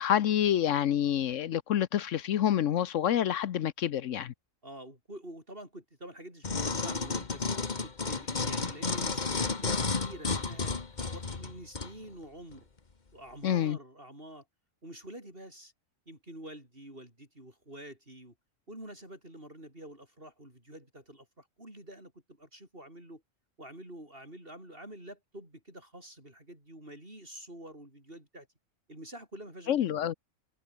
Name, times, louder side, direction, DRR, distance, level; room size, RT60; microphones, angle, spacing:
voice 1, 0.0-4.3 13.4-13.8 29.7-30.1, left 10 dB, 75° left, 1.1 m, -27 dB
voice 2, 4.6-7.5 7.8-12.7 13.1-14.5 14.8-15.7 16.1-18.3 18.7-23.2 23.6-28.5 28.9-29.8, right 1 dB, 45° right, 8.2 m, -47 dB
sound 1, 6.4-11.9 12.5-12.6, left 4 dB, 35° left, 1.6 m, -32 dB
omnidirectional pair, 1.3 m